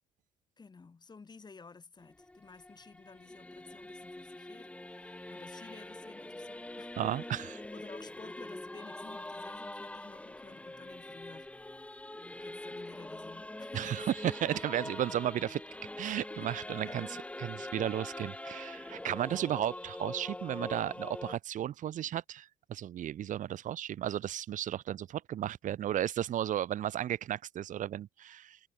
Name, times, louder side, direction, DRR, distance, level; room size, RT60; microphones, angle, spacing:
voice 1, 0.6-7.0 7.7-11.5 12.4-14.1 16.4-17.2 17.5-18.0 19.1-19.5, left 4 dB, 25° left, 4.1 m, -53 dB
Singing / Musical instrument, 2.0-21.4, left 1 dB, 5° left, 1.2 m, -44 dB
voice 2, 7.0-7.6 13.7-15.6 16.0-17.1 17.4-28.6, right 11 dB, 50° right, 0.6 m, -34 dB
cardioid pair, 110°, 17 cm